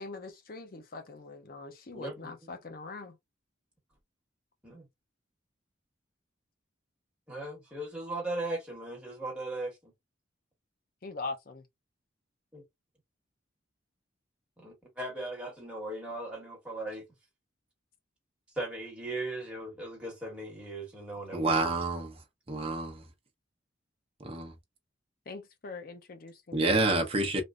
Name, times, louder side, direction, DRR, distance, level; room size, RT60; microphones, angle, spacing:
voice 1, 0.0-3.1 11.0-11.6 25.3-27.0, left 3 dB, 45° left, 0.6 m, -42 dB
voice 2, 1.9-2.5 4.6-4.9 7.3-9.9 12.5-12.6 14.6-17.0 18.5-21.6, right 2 dB, 5° right, 1.6 m, -38 dB
voice 3, 21.3-22.1 22.5-23.0 24.2-24.5 26.5-27.4, right 2 dB, 30° right, 0.8 m, -28 dB
3.3 x 2.5 x 2.4 m
head